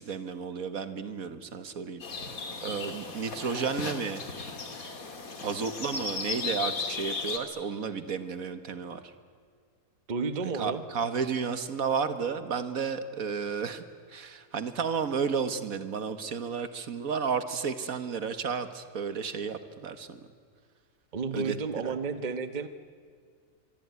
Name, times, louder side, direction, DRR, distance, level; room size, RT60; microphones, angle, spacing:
voice 1, 0.0-2.3 2.6-4.2 5.4-9.0 10.4-13.8 14.1-20.2 21.3-21.6 21.8-21.9, right 6 dB, 70° right, 11 dB, 1.7 m, -32 dB
sound 1, 2.0-7.4, left 4 dB, 70° left, 2.7 m, -36 dB
voice 2, 10.1-10.8 21.1-22.7, right 4 dB, 35° right, 10 dB, 1.2 m, -32 dB
25.5 x 23.5 x 9.4 m, 2.1 s
omnidirectional pair, 1.5 m